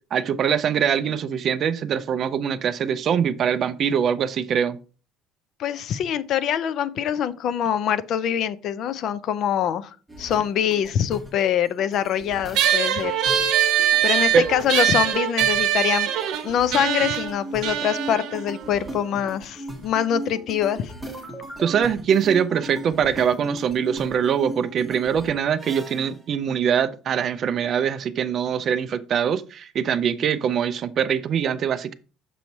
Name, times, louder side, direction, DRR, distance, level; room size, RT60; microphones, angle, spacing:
voice 1, 0.1-4.8 14.3-14.4 21.6-31.9, right 8 dB, 35° right, 0.4 m, -23 dB
voice 2, 5.6-13.2 14.0-16.1 16.4-20.9, left 9 dB, 45° left, 0.4 m, -24 dB
sound 1, 10.1-26.2, equal, ahead, 0.9 m, -38 dB
sound 2, 12.5-19.3, right 10 dB, 60° right, 0.8 m, -23 dB
6.9 x 3.1 x 5.2 m
cardioid pair, 170°, 0 cm